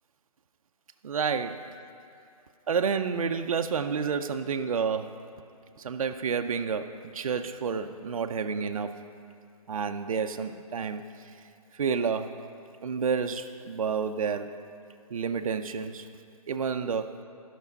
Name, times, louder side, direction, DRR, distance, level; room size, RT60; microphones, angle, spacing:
voice 1, 1.0-1.7 2.7-5.2 5.8-8.9 9.7-11.3 11.7-12.4 12.8-14.6 15.1-16.1 16.5-17.2, right 6 dB, 60° right, 7 dB, 0.5 m, -30 dB
12.0 x 6.1 x 5.3 m, 2.5 s
figure-of-eight pair, 150°, 19 cm